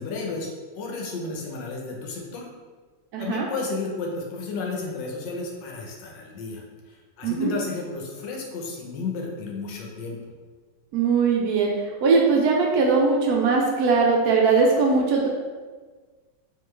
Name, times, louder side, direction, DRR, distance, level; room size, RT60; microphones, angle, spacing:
voice 1, 0.0-2.5 3.2-10.3, left 3 dB, 90° left, 0 dB, 1.4 m, -33 dB
voice 2, 3.1-3.5 7.2-7.5 10.9-15.3, right 4 dB, 70° right, -1 dB, 1.0 m, -20 dB
3.8 x 2.9 x 3.2 m, 1.4 s
omnidirectional pair, 1.9 m